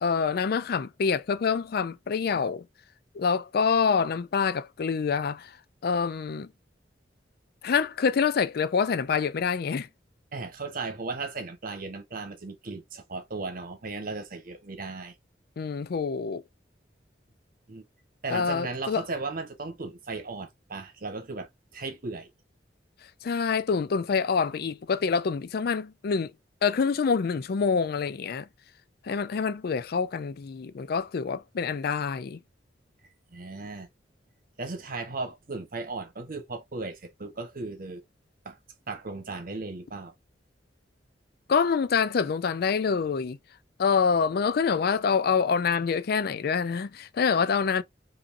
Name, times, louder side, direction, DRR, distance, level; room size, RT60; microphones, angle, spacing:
voice 1, 0.0-2.7 3.1-5.6 5.8-6.5 7.6-9.9 15.6-16.4 18.3-19.0 23.2-26.3 26.6-28.5 29.0-32.4 41.5-43.4 43.8-47.8, left 5 dB, 60° left, 0.4 m, -26 dB
voice 2, 10.3-15.1 17.7-17.8 18.2-22.3 33.3-33.9 34.6-38.0 38.4-38.6 38.9-40.1, right 3 dB, 55° right, 1.2 m, -36 dB
5.2 x 2.7 x 2.6 m
head